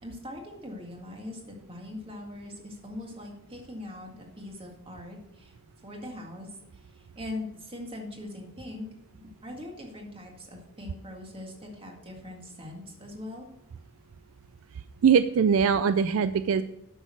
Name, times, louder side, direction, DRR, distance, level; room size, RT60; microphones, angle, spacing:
voice 1, 0.0-5.5 5.8-8.9 9.4-13.5, left 1 dB, 25° right, 1 dB, 1.9 m, -41 dB
voice 2, 15.0-16.6, right 6 dB, 65° right, 12 dB, 0.4 m, -22 dB
9.1 x 6.3 x 6.1 m, 0.83 s
head